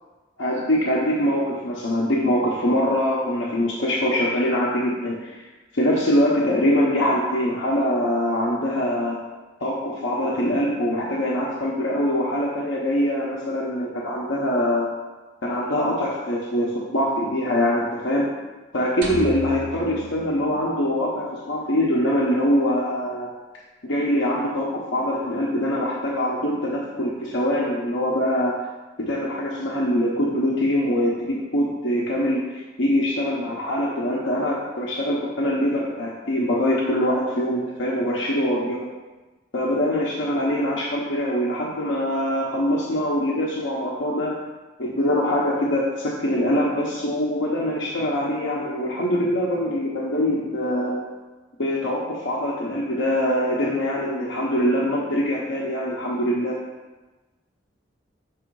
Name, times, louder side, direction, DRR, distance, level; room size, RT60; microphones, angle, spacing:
voice 1, 0.4-5.4 5.7-9.2 9.6-14.9 15.4-18.3 18.7-23.3 23.8-28.6 29.0-38.9 39.5-44.4 44.8-51.0 51.6-56.6, equal, 90° left, -5 dB, 0.9 m, -23 dB
sound 1, 19.0-21.3, right 1 dB, 70° right, 1.0 m, -34 dB
6.2 x 3.3 x 4.6 m, 1.2 s
head